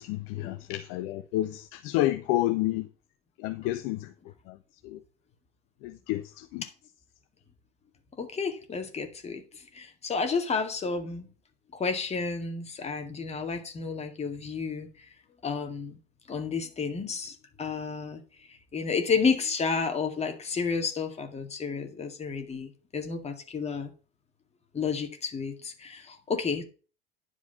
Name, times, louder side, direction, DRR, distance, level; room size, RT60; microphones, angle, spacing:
voice 1, 0.0-2.9 3.4-4.1 4.8-5.0 5.8-6.6, left 15 dB, 45° left, 0.6 m, -29 dB
voice 2, 8.2-9.4 9.7-11.3 11.7-14.9 15.4-16.0 16.3-18.2 18.7-23.9 24.7-26.6, left 5 dB, 20° left, 2.0 m, -31 dB
10.5 x 5.0 x 5.7 m
figure-of-eight pair, 75°, 30 cm